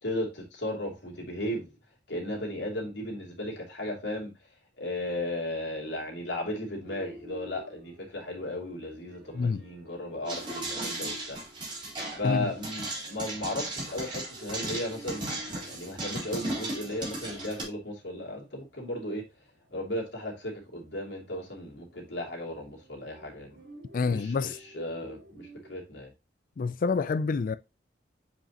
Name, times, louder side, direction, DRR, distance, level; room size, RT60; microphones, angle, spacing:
voice 1, 0.0-1.7 2.1-4.3 4.8-11.4 12.2-19.3 19.7-23.6 24.0-26.1, left 1 dB, 85° left, 2.8 m, -35 dB
sound 1, 6.8-25.7, left 1 dB, 60° right, 3.9 m, -52 dB
sound 2, 10.3-17.6, right 2 dB, 30° right, 3.6 m, -36 dB
voice 2, 23.9-24.6 26.6-27.6, left 4 dB, 50° left, 0.4 m, -27 dB
7.6 x 5.2 x 2.9 m
head